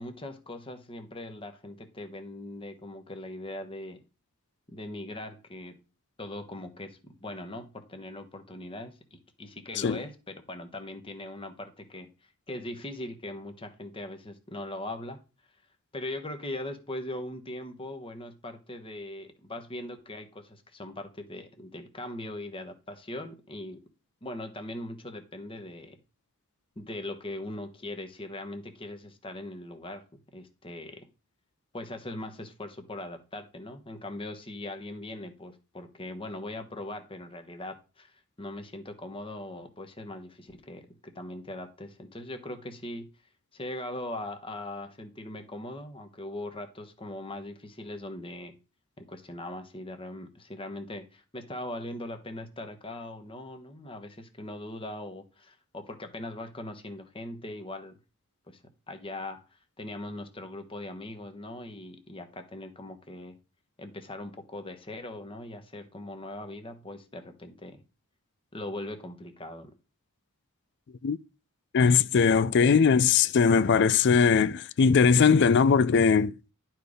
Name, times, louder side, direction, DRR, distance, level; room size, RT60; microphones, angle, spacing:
voice 1, 0.0-4.0 4.7-5.8 6.2-12.1 12.5-15.2 15.9-23.8 24.2-26.0 26.8-30.0 30.3-31.1 31.7-43.0 43.5-48.5 49.0-58.0 58.5-58.6 58.9-63.3 63.8-67.8 68.5-69.7, left 1 dB, 25° left, 1.1 m, -40 dB
voice 2, 71.7-76.3, left 6 dB, 50° left, 0.4 m, -20 dB
11.0 x 4.5 x 5.0 m
head